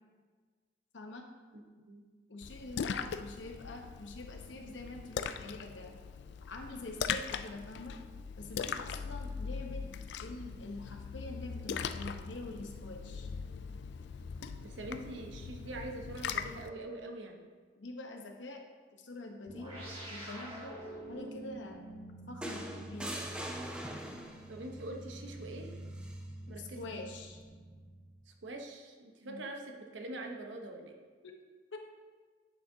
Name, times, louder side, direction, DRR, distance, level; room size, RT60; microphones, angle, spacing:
voice 1, 0.9-1.3 2.3-6.0 6.4-8.0 8.4-9.9 10.2-13.3 17.8-18.7 19.0-20.8 21.1-21.9 22.3-23.4 26.5-27.4 29.2-29.5 31.2-31.4 31.7-31.8, left 2 dB, 80° left, 3 dB, 0.9 m, -45 dB
Splash splatter, 2.4-16.7, left 6 dB, 65° left, 0.3 m, -40 dB
voice 2, 14.6-17.4 24.5-25.7 26.5-26.8 28.3-31.0, right 2 dB, 85° right, 3 dB, 0.9 m, -44 dB
sound 1, 19.5-28.3, right 1 dB, 30° right, 1.7 m, -47 dB
sound 2, 22.4-24.6 26.0-26.2, right 1 dB, 5° right, 0.5 m, -41 dB
9.8 x 6.0 x 2.7 m, 1.5 s
head